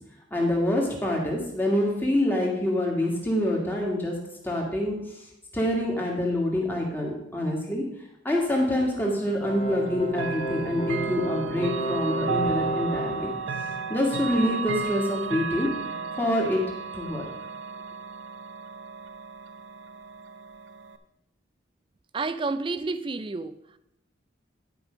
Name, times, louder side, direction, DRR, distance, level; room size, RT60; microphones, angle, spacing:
voice 1, 0.3-4.2 4.4-5.0 5.5-7.8 8.2-13.3 13.9-15.7 16.2-16.6 16.9-17.3, left 1 dB, 10° left, -1 dB, 1.8 m, -26 dB
sound 1, 9.4-13.3, right 1 dB, 30° left, 1.2 m, -31 dB
Chime / Clock, 10.1-21.0, right 5 dB, 85° right, 0.6 m, -34 dB
voice 2, 22.1-23.8, right 3 dB, 25° right, 14 dB, 0.4 m, -30 dB
10.5 x 5.3 x 5.0 m, 0.83 s
head